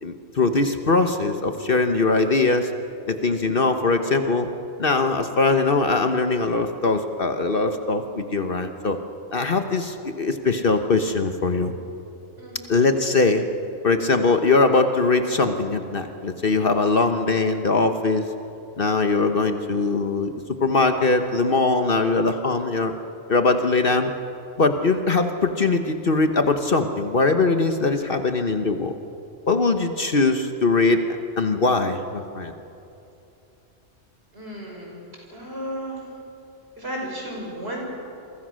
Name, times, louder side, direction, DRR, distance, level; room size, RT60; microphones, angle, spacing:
voice 1, 0.0-2.7 3.1-4.5 4.8-9.0 9.3-11.7 12.7-13.4 13.8-18.3 18.8-20.3 20.6-22.9 23.3-24.1 24.6-29.0 29.5-31.0 31.4-32.5, left 3 dB, 50° left, 7 dB, 1.2 m, -21 dB
voice 2, 34.3-35.0 35.3-36.0 36.8-37.8, equal, 55° right, -1 dB, 6.5 m, -33 dB
29.0 x 23.0 x 6.4 m, 2.8 s
omnidirectional pair, 1.3 m